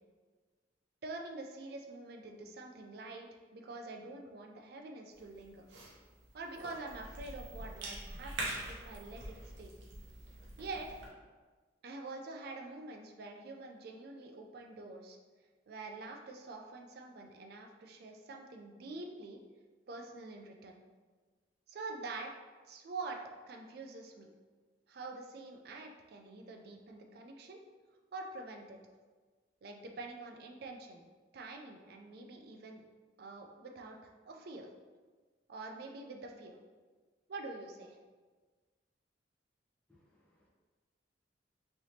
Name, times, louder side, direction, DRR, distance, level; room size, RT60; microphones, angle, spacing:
voice 1, 1.0-5.6 6.3-9.7 10.6-10.9 11.8-15.2 15.7-19.4 19.9-20.8 21.7-22.3 22.7-23.2 23.5-24.3 24.9-27.6 28.1-28.8 29.6-31.1 31.3-32.9 33.2-34.7 35.5-36.6 37.3-38.0, right 3 dB, 60° right, 3 dB, 0.4 m, -46 dB
Cough / Chewing mastication, 5.1-11.1, right 1 dB, 80° right, 0.7 m, -45 dB
voice 2, 39.9-40.5, left 1 dB, 5° left, -5 dB, 0.6 m, -69 dB
3.3 x 2.8 x 2.7 m, 1.4 s
head